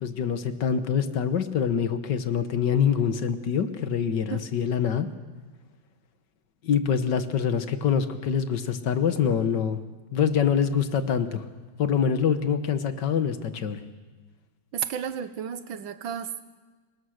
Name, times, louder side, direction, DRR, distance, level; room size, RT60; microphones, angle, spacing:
voice 1, 0.0-5.1 6.6-9.8 10.1-11.4 11.8-13.8, left 7 dB, 65° left, 10 dB, 1.8 m, -25 dB
voice 2, 14.7-16.4, right 8 dB, 85° right, 12 dB, 1.8 m, -32 dB
26.5 x 21.5 x 6.5 m, 1.3 s
omnidirectional pair, 2.1 m